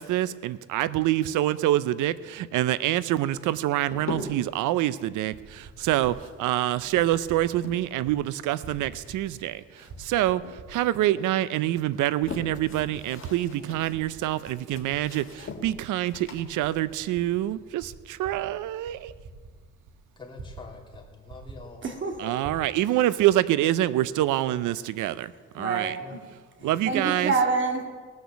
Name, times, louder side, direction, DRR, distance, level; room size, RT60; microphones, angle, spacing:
voice 1, 0.0-10.4 10.7-19.1 22.2-26.0 26.6-27.3, right 14 dB, 85° right, 17 dB, 0.6 m, -26 dB
sound 1, 3.3-4.6 5.7-8.0 8.3-10.2 10.4-11.3 11.8-17.9, left 4 dB, 45° left, 2.0 m, -42 dB
Typing, 4.2-4.3 5.1-6.2 6.8-7.4 7.7-8.2 8.4-9.5 9.8-11.0 11.6-11.7 12.2-13.1 13.4-15.7 16.1-20.7 20.9-21.0 21.3-22.6, right 4 dB, 65° right, 2.5 m, -47 dB
voice 2, 20.2-21.8 25.8-26.2 26.6-26.8, left 3 dB, 15° left, -2 dB, 2.9 m, -46 dB
voice 3, 21.8-22.2 22.4-22.5 25.6-26.2 26.9-27.8, right 4 dB, 40° right, 2 dB, 2.5 m, -27 dB
18.5 x 6.4 x 6.9 m, 1.5 s
cardioid pair, 90°, 30 cm